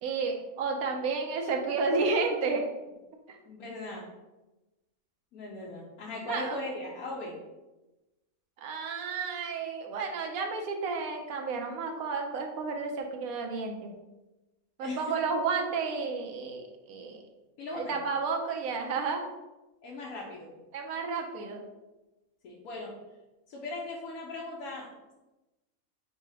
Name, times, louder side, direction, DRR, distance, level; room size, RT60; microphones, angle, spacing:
voice 1, 0.0-2.6 3.3-3.4 6.2-6.6 8.6-13.9 14.8-17.2 17.7-19.2 20.7-21.6, right 4 dB, 80° right, 3 dB, 1.2 m, -31 dB
voice 2, 3.4-4.1 5.3-7.4 14.8-15.0 17.6-18.0 19.8-20.5 22.4-23.0 23.5-24.9, left 2 dB, 80° left, -5 dB, 1.2 m, -38 dB
3.9 x 2.8 x 4.8 m, 1.1 s
omnidirectional pair, 1.5 m